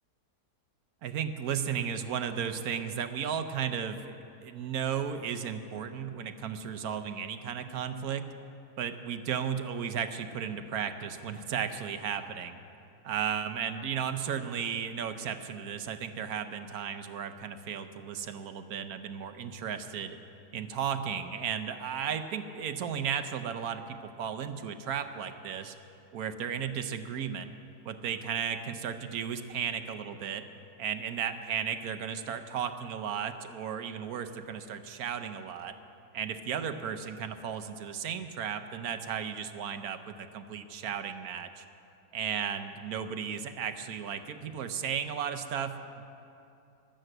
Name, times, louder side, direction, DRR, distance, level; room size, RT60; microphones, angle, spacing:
voice 1, 1.0-8.3 8.8-12.6 13.0-20.2 20.5-25.7 26.1-27.5 27.8-30.4 30.8-35.7 36.1-41.7 42.1-46.1, right 8 dB, 70° right, 9 dB, 1.2 m, -34 dB
14.0 x 11.5 x 7.8 m, 2.7 s
omnidirectional pair, 1.7 m